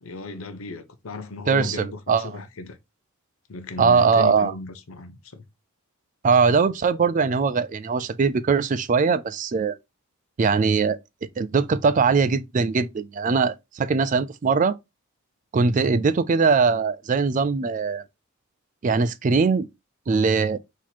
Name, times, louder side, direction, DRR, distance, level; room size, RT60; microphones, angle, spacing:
voice 1, 0.0-2.8 3.5-5.4 15.8-16.1, left 3 dB, 70° left, 0.7 m, -36 dB
voice 2, 1.5-2.3 3.8-4.5 6.2-9.8 10.4-11.0 11.4-14.8 15.5-18.0 18.8-19.7 20.1-20.6, right 5 dB, 35° right, 0.3 m, -21 dB
4.3 x 3.0 x 4.0 m
head